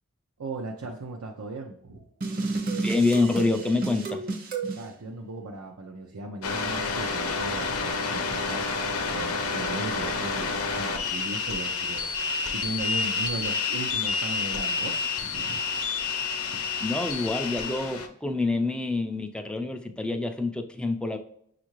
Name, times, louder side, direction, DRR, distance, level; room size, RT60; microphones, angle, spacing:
voice 1, 0.4-2.1 4.7-8.6 9.1-15.6 16.1-16.2, right 2 dB, 85° right, 0 dB, 0.6 m, -37 dB
sound 1, 2.2-4.8, right 3 dB, 45° right, 0.7 m, -31 dB
voice 2, 2.8-4.3 16.8-21.2, left 3 dB, 5° left, 5 dB, 0.3 m, -27 dB
sound 2, 6.4-18.1, left 4 dB, 75° left, 0.6 m, -29 dB
6.4 x 2.5 x 3.0 m, 0.69 s
head